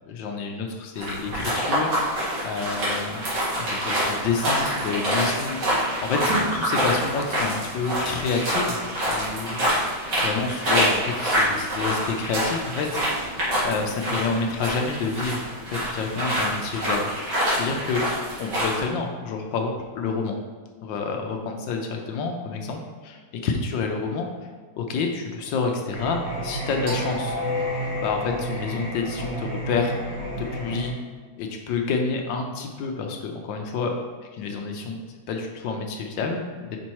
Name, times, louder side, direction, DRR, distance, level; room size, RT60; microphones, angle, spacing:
voice 1, 0.1-3.2 3.6-9.7 10.2-13.4 13.6-20.4 20.8-22.8 23.1-23.2 23.4-24.3 24.8-27.4 28.0-29.9 30.4-30.9 31.4-33.9 34.3-35.0 35.3-36.8, left 4 dB, 70° left, 3 dB, 1.3 m, -29 dB
sound 1, 1.0-18.8, equal, 75° right, 2.8 m, -26 dB
Singing, 25.9-30.9, equal, 50° right, 2.2 m, -30 dB
5.2 x 4.2 x 4.5 m, 1.5 s
omnidirectional pair, 2.2 m